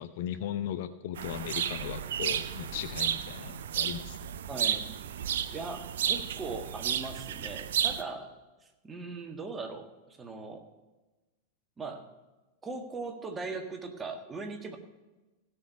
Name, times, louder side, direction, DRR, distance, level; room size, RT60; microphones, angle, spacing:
voice 1, 0.0-4.3, left 10 dB, 50° left, 11 dB, 0.7 m, -37 dB
sound 1, 1.2-8.0, right 9 dB, 60° right, 0.6 m, -32 dB
voice 2, 4.5-4.9 5.5-8.3 8.8-10.7 11.8-12.1 12.6-14.8, right 3 dB, 15° right, 4 dB, 1.7 m, -39 dB
16.5 x 6.4 x 6.9 m, 1.1 s
figure-of-eight pair, 90°, 0 cm